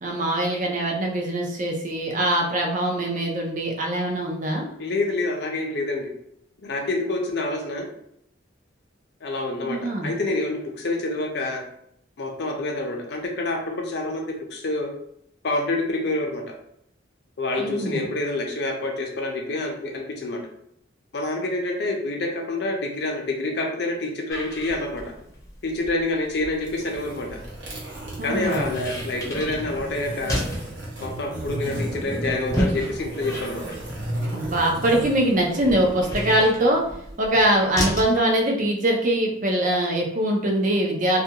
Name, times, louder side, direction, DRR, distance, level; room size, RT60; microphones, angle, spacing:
voice 1, 0.0-4.7 9.6-10.1 17.6-18.1 28.2-28.7 34.3-36.8 37.2-41.2, right 1 dB, 45° right, 1 dB, 0.5 m, -23 dB
voice 2, 4.8-6.1 6.6-7.9 9.2-11.6 12.2-14.9 15.4-16.4 17.4-20.4 21.1-25.0 25.6-27.4 28.2-30.4 31.0-33.6, left 2 dB, 60° left, 1 dB, 0.5 m, -27 dB
sound 1, 24.3-38.2, equal, 15° left, 0.6 m, -34 dB
sound 2, 26.5-36.4, right 1 dB, 75° right, 0.9 m, -34 dB
2.3 x 2.2 x 2.8 m, 0.72 s
head